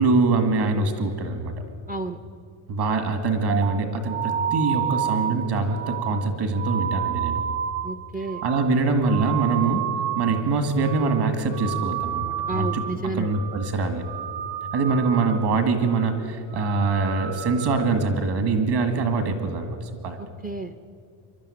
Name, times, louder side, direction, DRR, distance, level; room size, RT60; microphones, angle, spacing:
voice 1, 0.0-1.5 2.7-7.4 8.4-12.8 13.1-14.0 14.7-19.8 20.0-20.2, right 3 dB, 50° right, 8 dB, 2.2 m, -23 dB
voice 2, 1.9-2.2 7.8-8.4 12.5-13.3 20.2-20.7, right 3 dB, 20° right, 9 dB, 0.4 m, -31 dB
sound 1, 3.5-10.5 10.7-11.3 11.5-13.0 13.3-13.7 14.0-15.5 15.8-16.2 16.5-17.9, right 10 dB, 75° right, 1.2 m, -30 dB
23.0 x 12.0 x 9.9 m, 2.3 s
cardioid pair, 180°, 50 cm